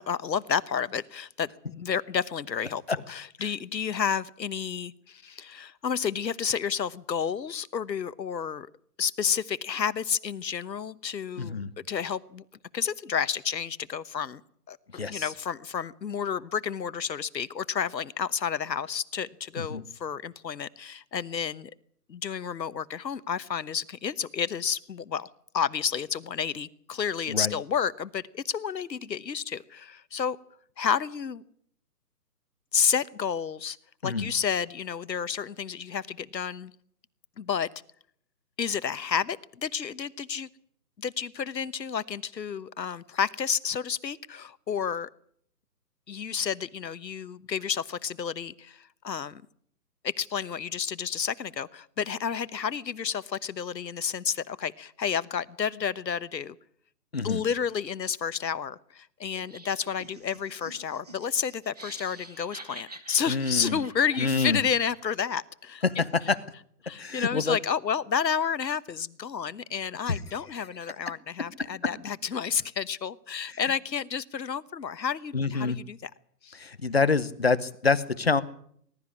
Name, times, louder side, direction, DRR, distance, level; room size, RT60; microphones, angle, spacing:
voice 1, 0.0-2.8 3.1-8.7 9.0-12.4 12.7-14.4 14.7-21.7 22.1-25.3 25.5-30.4 30.8-31.4 32.7-33.8 34.0-36.7 37.4-37.7 38.6-40.5 41.0-45.1 46.1-48.8 49.0-49.4 50.0-56.6 57.2-65.8 66.8-76.1 76.4-76.6, left 7 dB, 85° left, 17 dB, 1.2 m, -30 dB
voice 2, 11.4-11.7 14.9-15.3 19.6-19.8 27.3-27.5 34.0-34.3 57.1-57.4 63.3-63.8 64.2-64.6 65.8-66.4 67.0-67.6 70.1-70.2 73.5-73.6 75.3-75.8 76.5-78.4, left 4 dB, 40° left, 15 dB, 0.9 m, -27 dB
Laughter, 59.3-65.2, right 2 dB, 25° right, 1.0 m, -48 dB
20.5 x 13.0 x 9.7 m, 0.64 s
hypercardioid pair, 175°, 49 cm